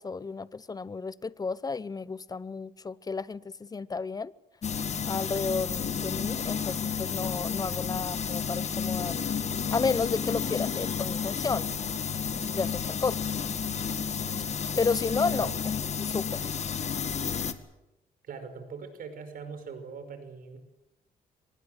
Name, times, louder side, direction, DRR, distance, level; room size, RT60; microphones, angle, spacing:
voice 1, 0.0-4.3 5.0-9.2 9.7-11.7 12.3-13.3 14.8-16.5, left 4 dB, 25° left, 0.8 m, -32 dB
sound 1, 4.6-17.5, left 7 dB, 45° left, 1.9 m, -31 dB
voice 2, 15.2-15.6 18.2-20.6, right 5 dB, 65° right, 5.5 m, -41 dB
25.0 x 20.0 x 8.0 m
cardioid pair, 95°, 16 cm